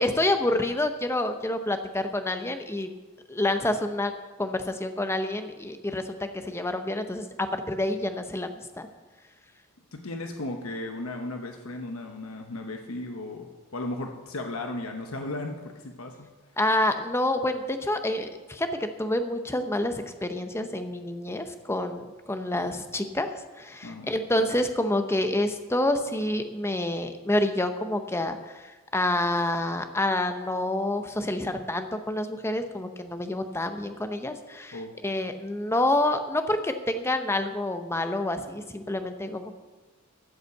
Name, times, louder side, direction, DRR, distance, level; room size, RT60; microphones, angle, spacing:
voice 1, 0.0-2.9 3.3-4.1 4.4-8.9 16.6-23.3 23.6-34.8 35.0-39.6, left 1 dB, 10° left, 8 dB, 0.7 m, -28 dB
voice 2, 9.9-16.3 23.8-24.1 34.7-34.9, left 2 dB, 75° left, 3 dB, 1.0 m, -35 dB
13.0 x 5.7 x 7.8 m, 1.3 s
head